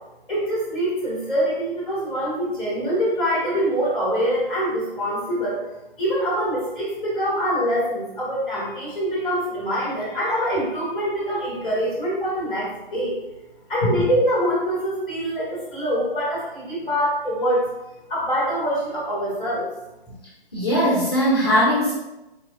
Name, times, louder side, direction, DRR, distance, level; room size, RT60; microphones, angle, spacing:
voice 1, 0.3-5.6 6.0-13.2 13.7-17.6 18.1-19.7, equal, ahead, -6 dB, 1.0 m, -24 dB
voice 2, 20.5-21.9, equal, 25° left, -6 dB, 0.5 m, -20 dB
3.9 x 2.9 x 2.6 m, 0.98 s
figure-of-eight pair, 140°, 30 cm